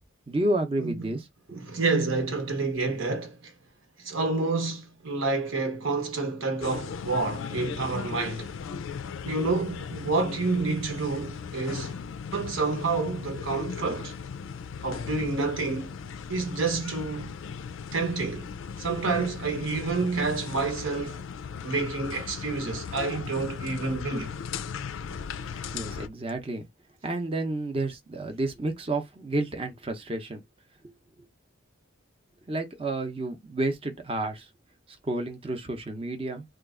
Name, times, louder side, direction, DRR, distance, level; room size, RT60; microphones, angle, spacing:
voice 1, 0.3-1.3 25.7-26.7 27.0-30.4 32.5-34.5 35.0-36.4, right 2 dB, 25° right, 0.6 m, -30 dB
voice 2, 1.5-3.5 4.0-8.5 9.2-12.0 12.3-14.1 14.8-15.9 16.3-17.3 17.9-18.5 18.8-21.2 21.6-24.3, right 3 dB, 80° right, 1.0 m, -29 dB
sound 1, 6.6-26.1, left 6 dB, 75° left, 0.4 m, -37 dB
2.9 x 2.3 x 3.6 m
head